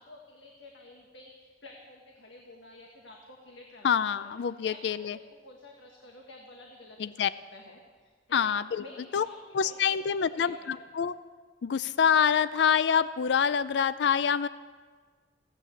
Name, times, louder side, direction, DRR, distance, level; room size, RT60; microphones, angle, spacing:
voice 1, 0.0-8.5 8.8-10.0 10.4-10.9, left 2 dB, 90° left, 1 dB, 1.6 m, -51 dB
voice 2, 3.8-5.2 7.0-7.3 8.3-8.8 9.1-9.3 9.5-11.1 11.6-14.5, left 7 dB, 65° left, 15 dB, 0.4 m, -26 dB
16.0 x 9.9 x 7.0 m, 1.5 s
head